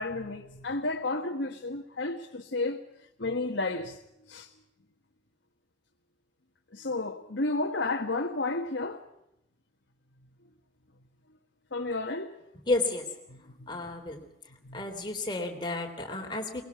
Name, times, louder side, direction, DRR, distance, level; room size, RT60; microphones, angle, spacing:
voice 1, 0.0-2.8 3.2-4.0 4.3-4.5 6.7-9.0 11.7-12.4 13.3-13.7 14.6-14.8, left 2 dB, 80° left, 1.4 m, -32 dB
voice 2, 12.7-13.2 13.7-14.2 14.7-16.6, left 2 dB, 25° left, 3.2 m, -31 dB
23.0 x 20.0 x 5.9 m
head